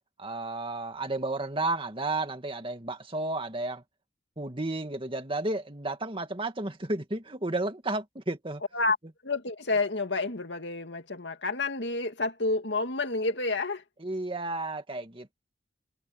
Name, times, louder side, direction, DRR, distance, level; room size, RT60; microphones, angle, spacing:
voice 1, 0.2-3.8 4.4-8.6 14.0-15.3, right 2 dB, 30° right, 2.2 m, -32 dB
voice 2, 9.2-13.8, left 3 dB, 75° left, 2.4 m, -29 dB
head